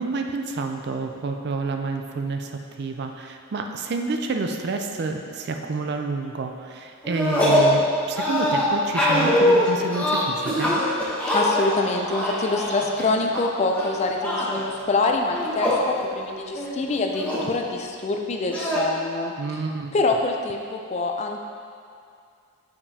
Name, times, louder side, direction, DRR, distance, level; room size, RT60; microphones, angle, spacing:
voice 1, 0.0-10.7 19.4-19.9, right 3 dB, 50° right, 5 dB, 0.4 m, -29 dB
sound 1, 7.0-7.7 8.2-13.4 13.7-14.6 15.2-15.8 16.2-16.3 16.6-17.5 18.5-18.8, left 1 dB, 5° left, 0.8 m, -22 dB
voice 2, 11.3-19.3 19.9-21.4, left 3 dB, 30° left, 3 dB, 0.3 m, -25 dB
6.7 x 5.6 x 2.7 m, 2.3 s
head